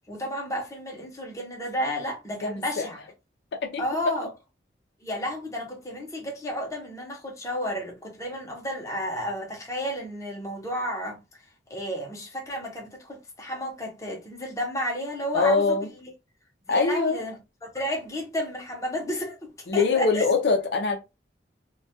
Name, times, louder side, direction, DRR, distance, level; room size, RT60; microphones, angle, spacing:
voice 1, 0.1-3.0 3.8-4.3 5.0-11.2 11.7-16.0 16.7-20.3, equal, 15° left, 0.7 m, -32 dB
voice 2, 2.4-2.9 3.6-3.8 15.3-15.9 16.7-17.2 19.7-21.0, left 4 dB, 70° left, 0.5 m, -23 dB
2.2 x 2.2 x 2.7 m
head